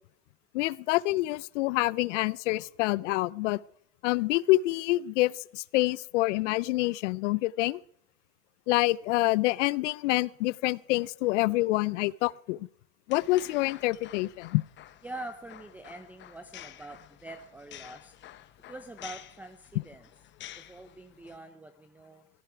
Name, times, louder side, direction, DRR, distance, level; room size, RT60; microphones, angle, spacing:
voice 1, 0.5-3.6 4.0-7.8 8.7-12.7 13.1-14.6, left 19 dB, 70° left, 22 dB, 0.6 m, -27 dB
sound 1, 13.1-21.4, left 12 dB, 30° left, 0.9 m, -49 dB
voice 2, 15.0-18.2 18.7-20.1 20.5-22.3, right 2 dB, 5° right, 10 dB, 0.6 m, -45 dB
16.5 x 14.5 x 4.6 m, 0.63 s
supercardioid pair, 125°, 37 cm